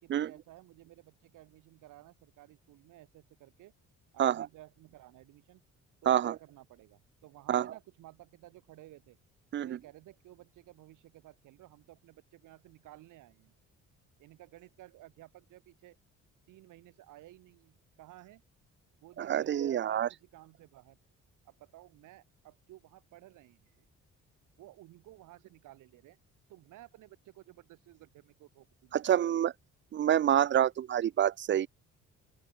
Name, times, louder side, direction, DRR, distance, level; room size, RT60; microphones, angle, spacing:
voice 1, 0.0-3.7 4.1-5.6 6.0-9.2 9.6-13.5 14.2-16.0 16.5-18.4 19.0-21.0 21.4-23.9 24.6-26.2 26.5-29.3, right 16 dB, 90° right, 3.2 m, -55 dB
voice 2, 19.2-20.1 28.9-29.5 29.9-31.7, right 10 dB, 40° right, 0.4 m, -27 dB
open air
cardioid pair, 90°, 30 cm